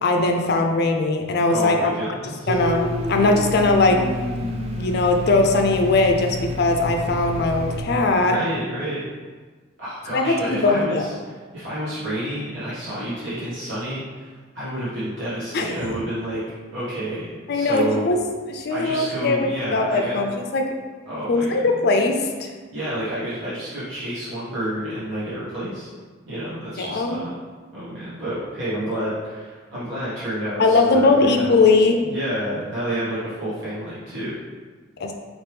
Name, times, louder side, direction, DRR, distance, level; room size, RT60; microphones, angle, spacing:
voice 1, 0.0-1.9 2.5-4.0 4.4-4.5 4.8-8.4 10.1-11.1 15.5-15.9 17.5-18.2 18.5-20.6 21.3-22.5 26.8-27.2 30.6-31.9 35.0-35.1, left 3 dB, 55° left, 3 dB, 0.5 m, -20 dB
voice 2, 1.4-2.6 8.2-9.0 9.8-16.4 16.7-18.0 18.7-20.3 21.0-21.8 22.7-25.9 26.3-27.3 27.7-31.5 32.0-34.3, right 1 dB, 65° right, -11 dB, 1.2 m, -29 dB
Domestic sounds home sounds, 2.5-7.8, left 1 dB, 30° right, 0.4 m, -28 dB
4.4 x 3.0 x 3.4 m, 1.4 s
head